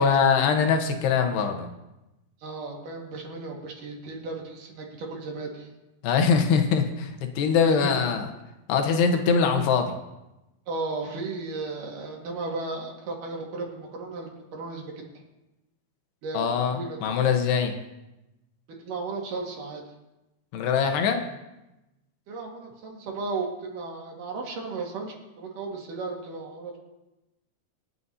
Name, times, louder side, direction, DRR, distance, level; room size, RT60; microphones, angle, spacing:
voice 1, 0.0-1.7 6.0-8.3 8.7-10.0 16.3-17.7 20.5-21.2, left 6 dB, 85° left, 4 dB, 3.3 m, -23 dB
voice 2, 2.4-5.7 7.6-8.0 10.7-14.9 16.2-17.0 18.8-19.8 22.3-26.8, right 3 dB, 60° right, 0 dB, 3.2 m, -34 dB
27.5 x 9.6 x 2.8 m, 0.98 s
omnidirectional pair, 4.6 m